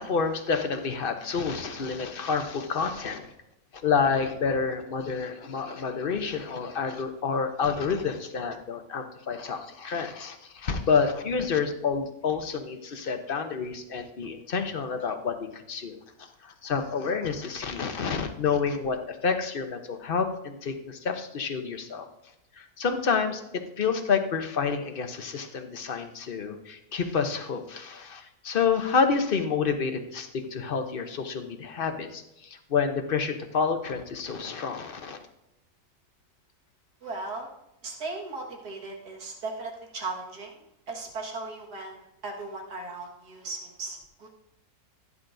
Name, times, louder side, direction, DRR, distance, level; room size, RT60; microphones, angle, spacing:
voice 1, 0.0-3.3 3.8-16.0 16.4-22.1 22.6-35.2, left 5 dB, 45° left, 7 dB, 0.8 m, -29 dB
voice 2, 37.0-37.5 37.8-40.6 40.9-44.3, right 3 dB, 80° right, 0 dB, 2.3 m, -37 dB
16.0 x 9.8 x 2.6 m, 0.85 s
omnidirectional pair, 1.7 m